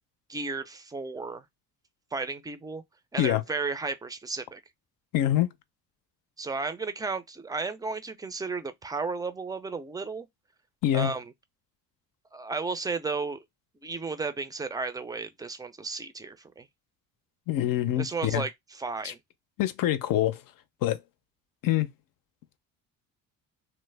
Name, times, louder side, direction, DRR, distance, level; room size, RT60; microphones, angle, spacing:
voice 1, 0.3-1.4 2.1-2.8 3.1-4.6 6.4-10.3 10.9-11.3 12.3-13.4 13.8-16.7 18.0-19.2, right 4 dB, 10° right, 0.4 m, -33 dB
voice 2, 5.1-5.5 10.8-11.1 17.5-18.4 19.0-19.1 19.6-20.4 20.8-21.0 21.6-21.9, left 13 dB, 60° left, 0.6 m, -25 dB
3.2 x 2.1 x 3.2 m
cardioid pair, 90°, 38 cm